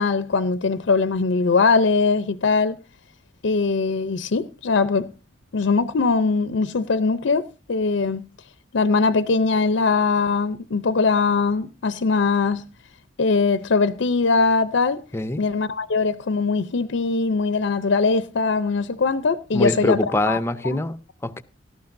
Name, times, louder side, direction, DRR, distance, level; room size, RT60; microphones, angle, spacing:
voice 1, 0.0-2.8 3.4-5.1 5.5-8.3 8.7-12.7 13.2-15.0 15.4-20.4 20.7-20.8, left 4 dB, 65° left, 0.5 m, -21 dB
voice 2, 19.5-21.4, left 1 dB, 15° left, 0.6 m, -24 dB
17.5 x 13.0 x 2.6 m
head